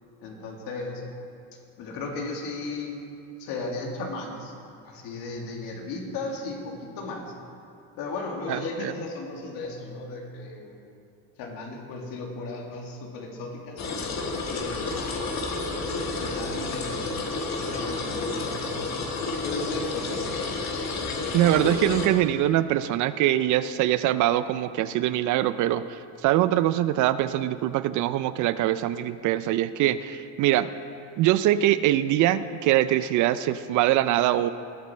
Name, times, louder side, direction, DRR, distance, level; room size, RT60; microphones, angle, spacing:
voice 1, 0.2-1.0 1.8-3.0 3.4-4.5 4.8-7.3 8.0-10.8 11.4-13.8 14.3-15.3 16.2-17.2 17.6-19.0 19.4-20.6, left 3 dB, 70° left, 0 dB, 2.3 m, -35 dB
voice 2, 8.5-8.9 21.3-30.7 31.2-34.5, right 13 dB, 55° right, 14 dB, 0.5 m, -23 dB
sound 1, 13.8-22.1, left 3 dB, 50° left, 1.7 m, -30 dB
19.0 x 7.2 x 4.3 m, 2.7 s
cardioid pair, 125°, 36 cm